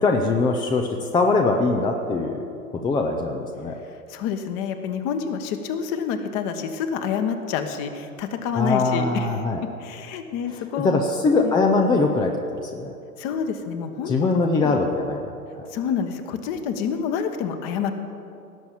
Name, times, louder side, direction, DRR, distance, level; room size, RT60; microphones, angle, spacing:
voice 1, 0.0-2.4 2.8-3.8 8.5-9.6 10.8-12.9 14.1-15.3, left 3 dB, 10° left, 3 dB, 0.6 m, -22 dB
voice 2, 3.8-9.4 9.8-10.9 11.4-11.5 13.2-14.1 14.6-14.8 15.7-17.9, left 7 dB, 35° left, 7 dB, 1.4 m, -28 dB
18.0 x 7.0 x 8.6 m, 2.6 s
figure-of-eight pair, 110°, 46 cm